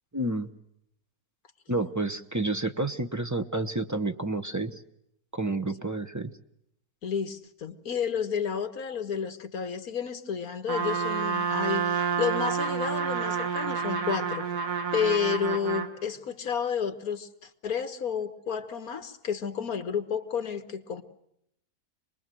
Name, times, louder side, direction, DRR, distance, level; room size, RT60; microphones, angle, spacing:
voice 1, 0.1-0.5 1.7-4.7 5.3-6.3, right 2 dB, 15° right, 7 dB, 0.8 m, -30 dB
voice 2, 7.0-14.5 14.9-21.0, left 7 dB, 70° left, 9 dB, 1.9 m, -31 dB
Trumpet, 10.7-15.9, right 6 dB, 90° right, 2.3 m, -29 dB
27.0 x 20.5 x 7.8 m, 0.76 s
omnidirectional pair, 1.6 m